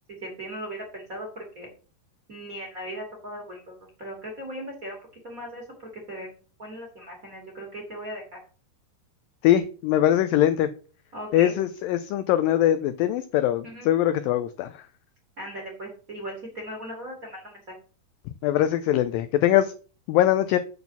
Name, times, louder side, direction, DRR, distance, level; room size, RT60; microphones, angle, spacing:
voice 1, 0.2-1.7 2.3-5.0 5.2-5.6 5.9-6.3 6.6-8.4 11.1-11.5 13.6-13.9 15.4-17.6, equal, 30° right, 0 dB, 1.8 m, -38 dB
voice 2, 9.4-10.7 11.3-14.7 18.4-19.7 20.1-20.6, left 12 dB, 85° left, 11 dB, 2.0 m, -22 dB
8.7 x 4.1 x 6.9 m, 0.38 s
omnidirectional pair, 4.6 m